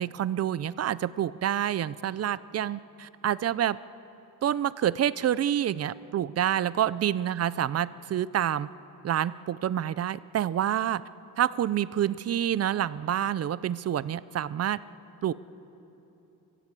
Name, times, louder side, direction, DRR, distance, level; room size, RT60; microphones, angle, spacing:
voice 1, 0.0-3.8 4.4-8.7 9.0-11.0 11.4-14.8 15.2-15.3, right 10 dB, 45° right, 17 dB, 0.5 m, -28 dB
30.0 x 16.0 x 8.3 m, 3.0 s
cardioid pair, 145°, 36 cm